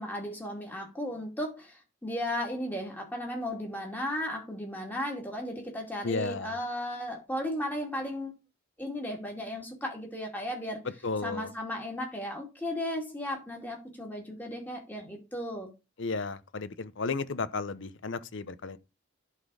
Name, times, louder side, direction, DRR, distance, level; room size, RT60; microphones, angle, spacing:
voice 1, 0.0-8.3 8.8-10.8 11.2-15.7, left 1 dB, 10° left, 2.4 m, -35 dB
voice 2, 6.0-6.6 11.0-11.5 16.0-18.8, left 4 dB, 65° left, 0.7 m, -33 dB
11.0 x 4.2 x 4.8 m
head